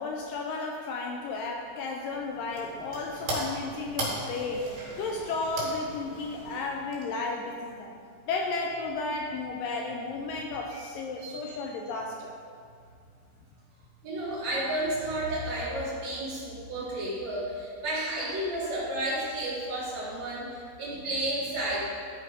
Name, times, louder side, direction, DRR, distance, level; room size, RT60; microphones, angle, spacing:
voice 1, 0.0-4.7 5.0-7.9 8.3-12.4, left 3 dB, 80° left, 1 dB, 2.1 m, -33 dB
sound 1, 2.1-7.5, right 1 dB, 70° right, 4.0 m, -38 dB
voice 2, 11.2-11.6 14.0-21.8, right 1 dB, 55° right, -7 dB, 2.7 m, -32 dB
12.5 x 4.5 x 5.1 m, 2.2 s
omnidirectional pair, 4.4 m